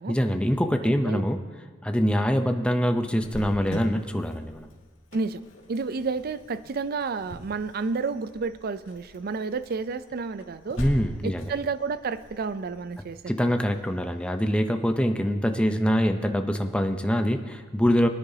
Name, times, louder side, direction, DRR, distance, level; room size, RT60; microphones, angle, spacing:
voice 1, 0.1-1.4 1.8-4.7 10.8-11.5 13.3-18.1, equal, 5° left, 5 dB, 0.6 m, -24 dB
Cricket, 3.2-14.7, left 1 dB, 85° left, 1.8 m, -43 dB
voice 2, 5.7-10.8 11.2-13.5, right 4 dB, 50° right, 14 dB, 0.4 m, -31 dB
22.0 x 9.9 x 2.8 m, 1.5 s
head